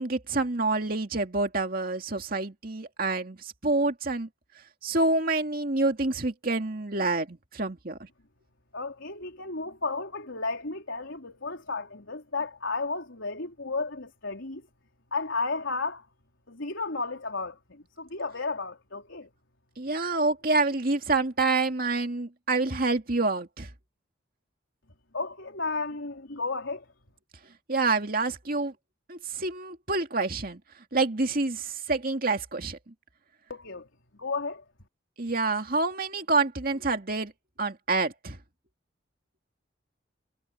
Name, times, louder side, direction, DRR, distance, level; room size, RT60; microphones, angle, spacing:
voice 1, 0.0-4.3 4.8-8.0 19.8-23.7 27.7-28.7 29.1-30.6 30.9-32.8 35.2-37.3 37.6-38.4, right 3 dB, 50° right, 2.3 m, -27 dB
voice 2, 8.7-14.6 15.1-16.0 16.5-19.3 25.1-26.9 33.5-33.9 34.2-34.6, left 3 dB, 80° left, 3.9 m, -33 dB
head